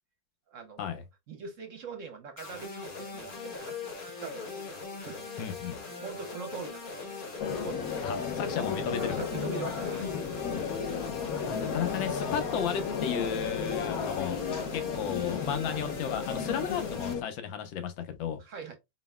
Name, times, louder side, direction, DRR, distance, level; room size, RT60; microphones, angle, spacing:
voice 1, 0.5-1.0 1.3-4.6 5.0-5.4 5.8-7.3 7.6-8.0 9.0-10.1 13.5-14.0 15.7-15.9 18.4-18.8, right 5 dB, 55° right, 0.9 m, -43 dB
sound 1, 2.4-17.1, left 4 dB, 40° left, 0.8 m, -40 dB
voice 2, 5.4-5.8 8.0-9.2 11.5-14.4 14.7-18.4, left 8 dB, 80° left, 1.6 m, -34 dB
sound 2, 7.4-17.2, left 6 dB, 65° left, 1.0 m, -34 dB
4.2 x 3.9 x 2.2 m
omnidirectional pair, 2.1 m